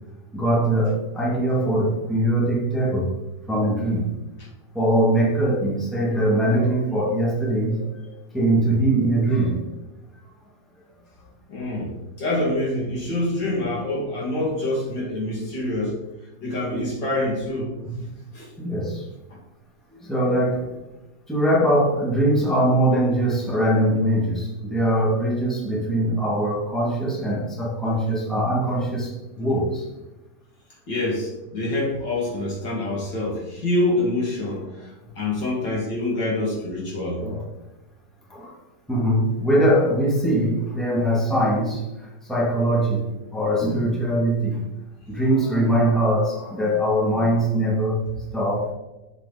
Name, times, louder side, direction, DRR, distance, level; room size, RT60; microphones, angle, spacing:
voice 1, 0.3-3.1 3.5-4.1 4.7-9.6 18.6-19.0 19.9-20.7 21.3-29.8 37.2-37.4 38.3-38.5 38.9-41.9 42.2-43.1 43.3-44.6 45.1-48.0 48.3-48.7, right 1 dB, ahead, -4 dB, 1.9 m, -22 dB
voice 2, 11.5-11.9 12.2-16.0 16.4-18.0 18.3-18.5 30.9-37.2, left 1 dB, 75° left, -4 dB, 3.0 m, -26 dB
7.3 x 7.2 x 4.2 m, 1.0 s
omnidirectional pair, 1.9 m